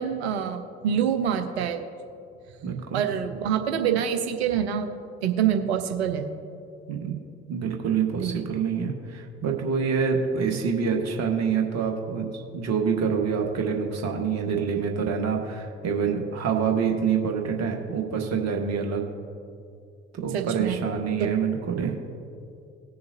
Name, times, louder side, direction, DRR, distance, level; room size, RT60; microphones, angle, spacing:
voice 1, 0.0-1.8 2.9-4.9 5.2-6.2 8.2-8.3 20.3-20.8, right 8 dB, 75° right, 7 dB, 0.9 m, -26 dB
voice 2, 2.6-3.0 6.9-7.2 7.5-19.0 20.1-21.9, right 6 dB, 50° right, 2 dB, 1.7 m, -26 dB
19.5 x 6.6 x 2.8 m, 2.4 s
figure-of-eight pair, 45°, 33 cm